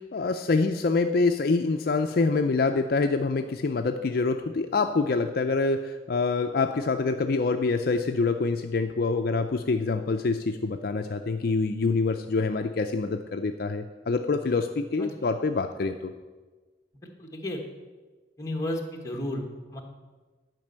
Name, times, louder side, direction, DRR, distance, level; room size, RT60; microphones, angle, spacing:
voice 1, 0.0-16.1, left 3 dB, 55° left, 6 dB, 0.4 m, -26 dB
voice 2, 17.0-17.6 18.4-19.4 19.7-19.8, left 1 dB, 15° left, 1 dB, 1.3 m, -33 dB
10.5 x 5.2 x 7.9 m, 1.3 s
head